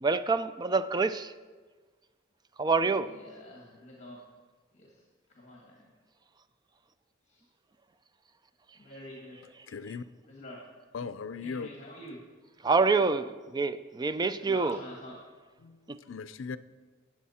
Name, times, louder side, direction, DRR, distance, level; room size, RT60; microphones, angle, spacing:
voice 1, 0.0-1.3 2.6-3.2 12.6-14.8 15.9-16.0, right 4 dB, 20° right, 0.4 m, -27 dB
voice 2, 3.0-4.3 4.7-5.0 5.3-5.9 7.3-7.5 8.8-9.4 10.3-10.6 11.4-12.2 14.4-15.2, left 1 dB, 35° left, 1.7 m, -47 dB
voice 3, 9.7-10.0 10.9-11.7 15.6-15.8 16.1-16.6, left 5 dB, 85° left, 0.5 m, -37 dB
17.5 x 7.2 x 4.3 m
head